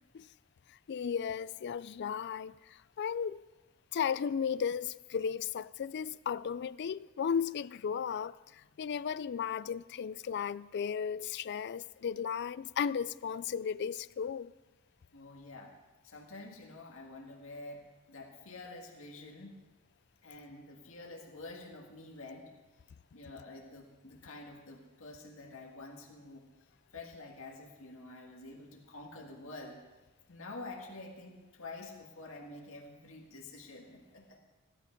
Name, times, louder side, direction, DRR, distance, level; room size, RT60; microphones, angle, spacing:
voice 1, 0.9-2.5 3.0-3.4 3.9-8.3 8.8-14.5, left 7 dB, 55° left, 0.4 m, -35 dB
voice 2, 15.1-15.8 16.0-19.6 20.2-22.5 23.1-26.5 26.9-29.8 30.3-34.4, left 2 dB, 75° left, 1.9 m, -48 dB
16.0 x 12.0 x 5.2 m
head